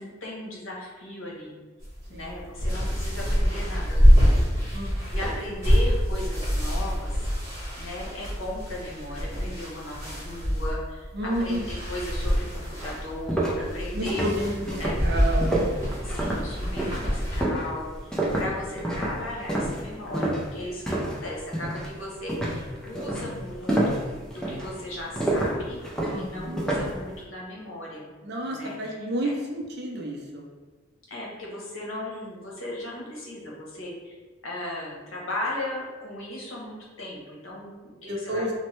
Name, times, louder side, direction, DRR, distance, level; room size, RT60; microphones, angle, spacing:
voice 1, 0.0-1.5 2.1-4.8 5.1-7.2 7.8-11.1 11.4-14.3 14.8-15.0 16.0-24.0 24.3-25.8 26.1-28.1 28.5-28.9 29.2-29.3 31.0-34.1 34.4-38.5, left 1 dB, 80° left, -3 dB, 0.8 m, -36 dB
sound 1, 1.8-17.4, equal, 15° right, 1.1 m, -25 dB
voice 2, 4.7-5.1 11.1-11.7 13.9-15.5 26.1-26.7 28.2-30.5 38.1-38.5, right 1 dB, 55° right, 0 dB, 0.5 m, -31 dB
sound 2, 12.8-21.2 21.5-21.9 22.3-27.0, right 1 dB, 5° left, 0.4 m, -28 dB
3.1 x 2.1 x 3.0 m, 1.3 s
head